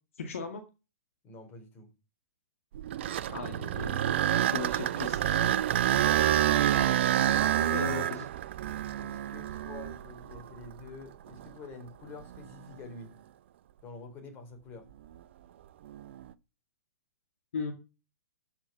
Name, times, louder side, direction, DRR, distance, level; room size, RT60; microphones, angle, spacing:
voice 1, 0.2-0.6 3.3-5.4 7.7-8.3 17.5-17.7, left 5 dB, 60° left, 2.1 m, -37 dB
voice 2, 1.2-1.9 7.2-7.9 9.0-13.1 13.8-14.9, left 3 dB, 25° left, 4.2 m, -47 dB
sound 1, 2.7-10.8 11.4-11.5 12.2-12.4 15.9-16.2, right 11 dB, 50° right, 0.6 m, -28 dB
13.0 x 6.1 x 5.9 m
figure-of-eight pair, 110°, 8 cm